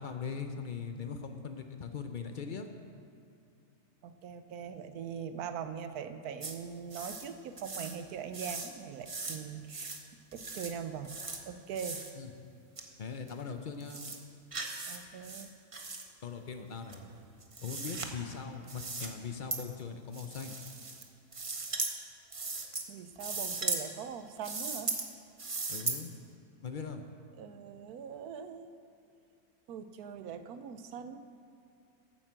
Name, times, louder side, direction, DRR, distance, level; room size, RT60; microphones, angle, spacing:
voice 1, 0.0-2.7 12.2-12.3 13.0-14.0 16.2-17.0 17.6-20.6 25.7-26.1 26.6-27.0, left 5 dB, 55° left, 6 dB, 0.5 m, -40 dB
voice 2, 4.0-10.0 10.3-11.1 11.5-12.0 14.9-15.5 22.9-24.9 27.4-28.7 29.7-31.2, right 7 dB, 80° right, 10 dB, 1.2 m, -41 dB
sound 1, 6.4-6.5 6.9-7.3 7.6-8.0 8.3-8.7 9.0-9.4 9.7-10.0 10.3-10.7 11.0-11.4 11.7-12.1 12.8-12.9 13.3-13.4 13.8-14.2 14.5-15.0 15.2-16.0 16.9-18.1 18.7-19.1 19.5-19.6 20.1-21.0 21.3-21.9 22.3-22.8 23.2-23.8 24.4-25.1 25.4-26.0, right 3 dB, 30° right, 0.7 m, -38 dB
9.0 x 8.9 x 7.4 m, 2.6 s
omnidirectional pair, 1.6 m